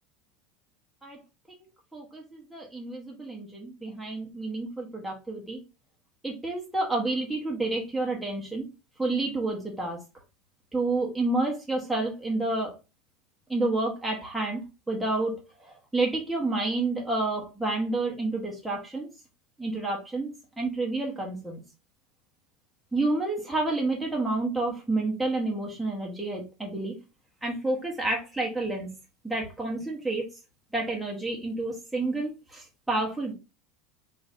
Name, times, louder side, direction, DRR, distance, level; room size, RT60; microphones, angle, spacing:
voice 1, 1.9-5.6 6.2-8.6 9.0-10.0 10.7-12.7 13.5-14.6 14.9-19.1 19.6-20.3 20.6-21.6 22.9-27.0 27.4-28.9 29.2-30.3 30.7-33.3, right 2 dB, 5° right, -2 dB, 1.0 m, -29 dB
3.8 x 2.6 x 3.8 m, 0.29 s
supercardioid pair, 130°, 0 cm